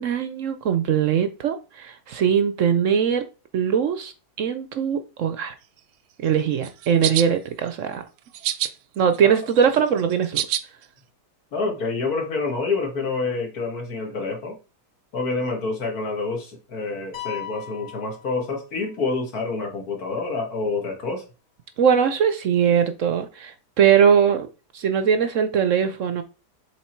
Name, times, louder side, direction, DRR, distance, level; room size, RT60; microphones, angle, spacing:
voice 1, 0.0-3.2 3.5-4.1 4.4-5.5 6.2-8.0 9.0-10.5 21.8-24.5 24.7-26.2, right 7 dB, 60° right, 0.9 m, -21 dB
sound 1, 6.6-7.3 8.3-8.7 9.1-10.6, right 12 dB, 85° right, 1.2 m, -26 dB
voice 2, 11.5-14.5 15.1-21.2, left 3 dB, 65° left, 2.1 m, -27 dB
sound 2, 17.1-19.0, left 13 dB, 85° left, 1.8 m, -38 dB
7.4 x 3.6 x 4.5 m
omnidirectional pair, 1.8 m